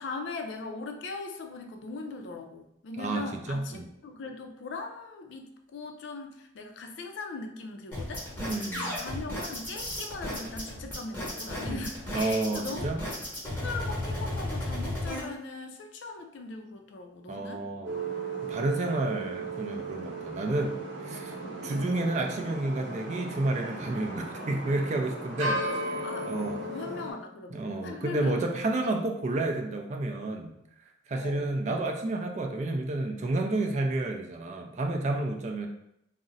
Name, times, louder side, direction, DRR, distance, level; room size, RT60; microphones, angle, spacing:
voice 1, 0.0-8.3 8.8-12.9 13.4-17.6 21.4-22.2 26.0-26.3 26.5-28.4 31.2-31.5, left 3 dB, 70° left, 4 dB, 0.4 m, -40 dB
voice 2, 3.0-3.9 8.4-8.9 11.7-11.8 12.1-13.0 17.3-17.9 18.4-21.4 21.6-26.6 27.5-30.6 31.1-35.7, right 2 dB, 35° right, 3 dB, 0.3 m, -30 dB
sound 1, 7.9-15.2, left 1 dB, 10° left, 0.9 m, -34 dB
sound 2, 17.8-27.1, right 2 dB, 75° right, 0.8 m, -36 dB
2.5 x 2.0 x 3.8 m, 0.79 s
head